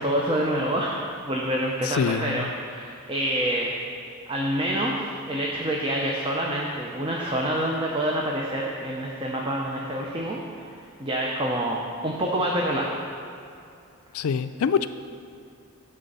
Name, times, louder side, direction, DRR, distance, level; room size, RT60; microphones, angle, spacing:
voice 1, 0.0-3.8 4.3-10.7 11.0-11.8 12.0-13.0, right 1 dB, 25° right, -2 dB, 0.7 m, -27 dB
voice 2, 1.8-2.5 14.1-14.9, left 6 dB, 75° left, 11 dB, 0.4 m, -25 dB
11.0 x 3.7 x 6.7 m, 2.5 s
head